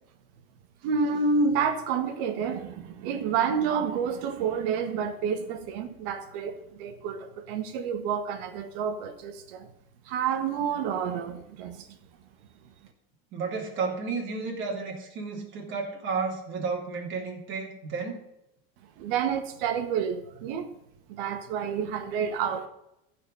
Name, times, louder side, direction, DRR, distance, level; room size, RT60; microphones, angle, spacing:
voice 1, 0.8-6.5 6.8-9.7 10.0-12.0 19.0-20.7 21.1-22.7, right 6 dB, 65° right, 1.6 m, -29 dB
voice 2, 13.3-18.2, right 4 dB, 40° right, 3.4 m, -32 dB
14.5 x 5.1 x 5.5 m
supercardioid pair, 145°, 30 cm